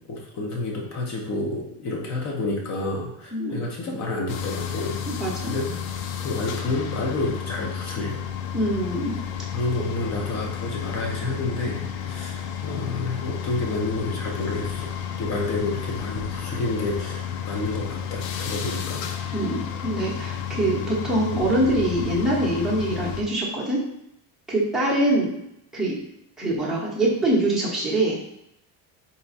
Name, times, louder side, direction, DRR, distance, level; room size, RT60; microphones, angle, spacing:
voice 1, 0.0-5.0 5.5-5.7 6.2-8.2 9.5-14.9 15.2-19.1, left 2 dB, 35° left, -1 dB, 0.9 m, -29 dB
sound 1, 4.3-23.2, left 8 dB, 65° left, 0.6 m, -32 dB
voice 2, 5.2-5.5 8.5-9.1 19.3-23.8 24.5-25.3 25.7-26.0 26.4-28.2, right 1 dB, ahead, -7 dB, 1.0 m, -24 dB
4.0 x 2.3 x 4.0 m, 0.79 s
cardioid pair, 140°, 47 cm